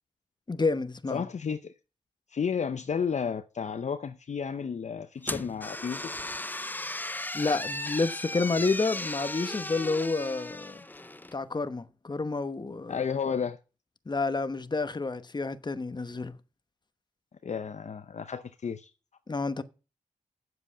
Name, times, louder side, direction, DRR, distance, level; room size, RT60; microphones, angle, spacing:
voice 1, 0.5-1.2 7.3-10.8 11.3-13.0 14.1-16.3 19.3-19.6, left 3 dB, 30° left, 1.0 m, -29 dB
voice 2, 1.1-1.7 2.3-6.1 12.9-13.6 17.4-18.9, left 6 dB, 55° left, 0.7 m, -32 dB
sound 1, 5.2-11.4, left 1 dB, 15° left, 0.6 m, -36 dB
7.9 x 7.6 x 8.5 m
cardioid pair, 60°, 14 cm